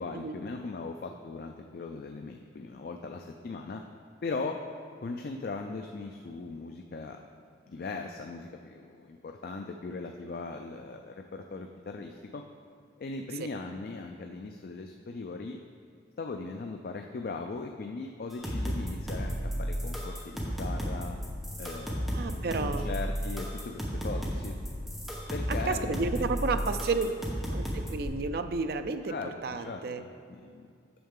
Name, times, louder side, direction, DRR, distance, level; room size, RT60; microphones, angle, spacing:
voice 1, 0.0-3.8 4.2-4.6 5.0-7.2 7.7-12.4 13.0-15.6 16.2-21.2 21.6-22.3 22.6-24.6 25.3-26.8 29.1-30.7, left 3 dB, 55° left, 4 dB, 0.3 m, -39 dB
sound 1, 18.3-28.0, equal, ahead, 1.0 m, -33 dB
voice 2, 22.1-22.9 25.5-27.1 27.5-29.2 29.4-30.0, right 4 dB, 55° right, 9 dB, 0.4 m, -31 dB
8.6 x 6.3 x 3.7 m, 2.4 s
head